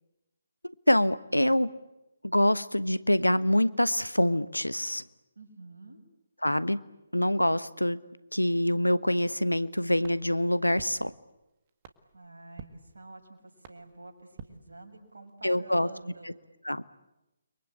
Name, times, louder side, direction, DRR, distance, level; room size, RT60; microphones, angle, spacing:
voice 1, 0.6-1.7 2.2-5.0 6.4-6.8 7.1-8.0 8.3-11.1 15.4-15.9 16.6-16.8, left 1 dB, 90° left, 15 dB, 1.2 m, -25 dB
voice 2, 5.3-6.0 12.1-16.4, right 2 dB, 70° right, 3 dB, 6.5 m, -48 dB
sound 1, 10.0-15.3, right 6 dB, 30° right, 1.8 m, -52 dB
30.0 x 23.0 x 8.6 m, 0.96 s
figure-of-eight pair, 140°, 0 cm